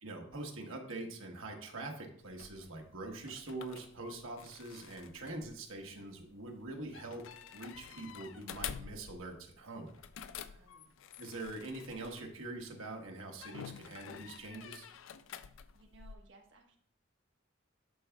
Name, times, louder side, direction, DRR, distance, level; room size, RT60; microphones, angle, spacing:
voice 1, 0.0-7.2 7.5-9.9 11.2-14.9, right 2 dB, 85° right, 2 dB, 1.2 m, -44 dB
sound 1, 2.2-12.7 13.4-16.1, left 8 dB, 70° left, 0.4 m, -49 dB
voice 2, 10.5-10.9 15.7-16.8, right 3 dB, 65° right, 2 dB, 1.3 m, -61 dB
11.5 x 4.4 x 2.3 m, 0.62 s
head